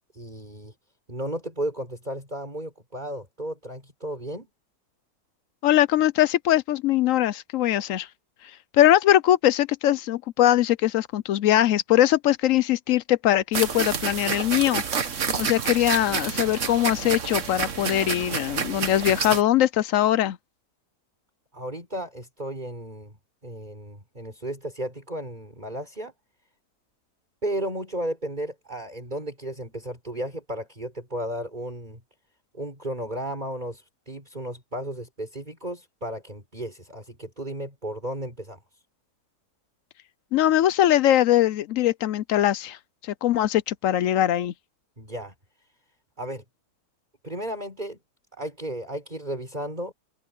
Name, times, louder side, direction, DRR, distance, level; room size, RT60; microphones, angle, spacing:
voice 1, 0.1-0.7 1.1-4.5 21.5-26.1 27.4-32.0 32.5-38.6 45.0-45.3 46.2-46.4 47.2-48.0 48.3-49.9, right 1 dB, 25° right, 5.4 m, -34 dB
voice 2, 5.6-8.1 8.8-14.8 15.4-20.4 40.3-42.8 43.0-44.5, left 12 dB, 70° left, 0.8 m, -21 dB
sound 1, 13.5-19.4, right 6 dB, 50° right, 1.6 m, -29 dB
open air
omnidirectional pair, 1.7 m